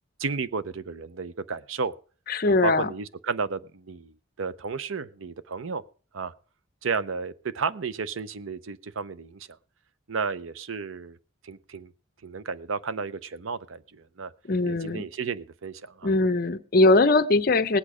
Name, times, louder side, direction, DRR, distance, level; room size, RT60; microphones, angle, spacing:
voice 1, 0.2-1.9 2.4-4.1 4.4-5.8 6.1-6.3 6.8-9.5 10.1-11.2 11.4-11.9 12.2-14.3 14.6-16.1, right 5 dB, 75° right, 0.6 m, -32 dB
voice 2, 2.3-2.9 14.5-15.0 16.0-17.8, left 2 dB, 45° left, 0.7 m, -21 dB
18.5 x 8.5 x 4.9 m
head